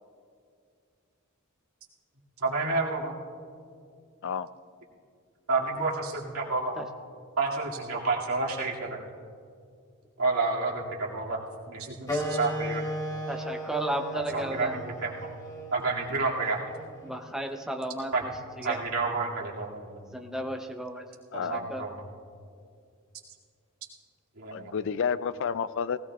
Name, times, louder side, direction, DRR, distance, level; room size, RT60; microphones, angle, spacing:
voice 1, 2.4-3.1 5.5-6.7 7.4-9.0 10.2-11.4 11.7-12.9 14.3-15.1 15.7-16.6 18.1-18.3 18.6-20.0 21.3-22.0 24.4-24.7, right 3 dB, 85° right, -4 dB, 2.4 m, -29 dB
Wind instrument woodwind instrument, 12.1-17.2, equal, 15° left, 1.6 m, -35 dB
voice 2, 13.3-14.8 17.0-18.1 18.6-18.8 20.1-21.0 21.5-21.8, right 1 dB, ahead, 3 dB, 0.7 m, -33 dB
voice 3, 21.3-21.7 24.5-26.0, left 6 dB, 60° left, 15 dB, 0.4 m, -30 dB
19.0 x 17.0 x 2.4 m, 2.3 s
head